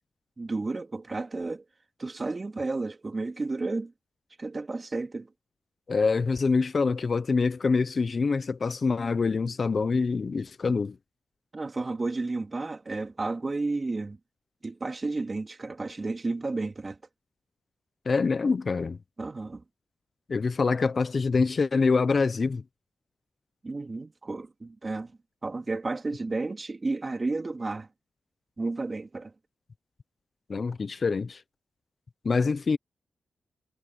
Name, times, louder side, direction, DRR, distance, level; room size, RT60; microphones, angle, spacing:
voice 1, 0.4-1.6 2.0-3.9 4.4-5.3 11.5-14.2 14.6-17.0 19.2-19.6 23.6-25.1 25.4-27.9 28.6-29.3, right 3 dB, 35° right, 2.5 m, -32 dB
voice 2, 5.9-10.9 18.1-19.0 20.3-22.6 30.5-31.4 32.2-32.8, left 4 dB, 50° left, 0.9 m, -25 dB
cardioid pair, 80°, 0 cm